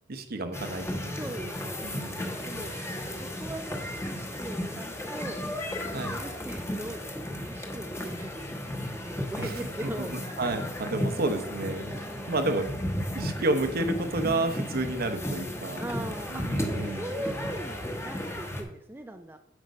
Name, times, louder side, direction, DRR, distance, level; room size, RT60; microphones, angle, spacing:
voice 1, 0.1-1.1 1.8-2.6 5.9-6.1 10.0-12.0 12.3-12.7 13.1-15.8 16.3-17.1, right 2 dB, 50° right, 8 dB, 0.8 m, -30 dB
sound 1, 0.5-18.6, left 1 dB, 15° left, 1.0 m, -34 dB
voice 2, 1.1-2.7 3.1-5.4 5.9-10.4 11.8-12.4 15.8-19.4, right 1 dB, 10° right, 6 dB, 0.4 m, -40 dB
8.0 x 5.3 x 5.2 m, 0.85 s
head